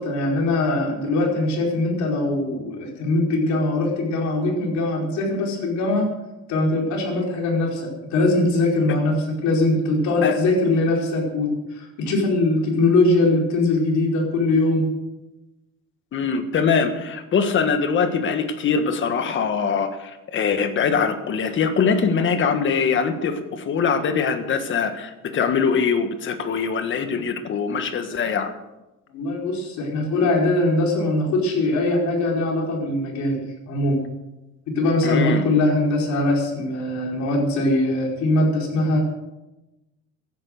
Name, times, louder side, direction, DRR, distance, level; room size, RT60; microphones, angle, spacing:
voice 1, 0.0-6.1 6.5-14.8 29.1-34.0 34.7-39.0, left 2 dB, 70° left, -1 dB, 4.8 m, -21 dB
voice 2, 16.1-28.5 35.0-35.4, left 6 dB, 40° left, 8 dB, 1.7 m, -22 dB
15.5 x 11.0 x 6.6 m, 1.0 s
cardioid pair, 150°, 29 cm